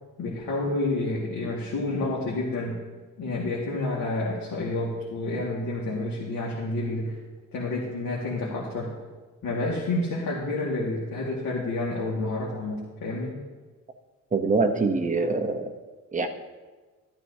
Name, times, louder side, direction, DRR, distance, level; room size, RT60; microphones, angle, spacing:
voice 1, 0.2-2.8 3.2-7.2 7.5-8.9 9.4-13.3, left 2 dB, 85° left, -4 dB, 1.9 m, -29 dB
voice 2, 14.3-15.7 16.1-16.3, right 3 dB, 25° right, 5 dB, 0.8 m, -24 dB
13.0 x 12.5 x 2.7 m, 1.3 s
wide cardioid pair, 150°, 33 cm